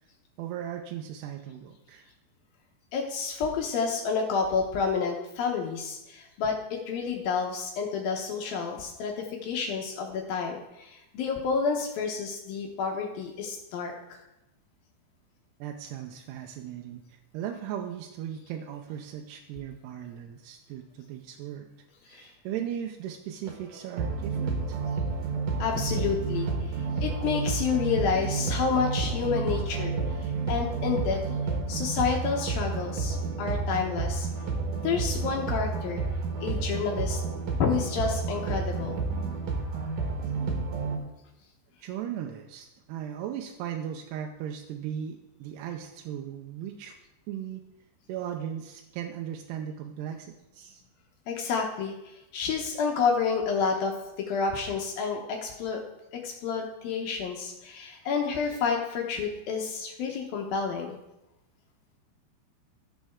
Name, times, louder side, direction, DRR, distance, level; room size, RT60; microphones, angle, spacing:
voice 1, 0.4-2.1 15.6-21.7 22.1-24.8 41.8-47.0 47.3-47.6 48.1-50.8, right 9 dB, 80° right, 2 dB, 2.5 m, -37 dB
voice 2, 2.9-14.2 22.1-22.3 25.6-26.5 27.0-30.0 30.5-31.4 31.7-34.3 34.8-36.0 36.4-37.2 37.6-39.0 51.3-51.9 52.3-55.8 56.2-61.0, left 5 dB, 75° left, 1 dB, 2.3 m, -29 dB
sound 1, 23.5-41.0, right 4 dB, 65° right, 2.4 m, -30 dB
14.0 x 7.4 x 3.6 m, 0.93 s
omnidirectional pair, 5.2 m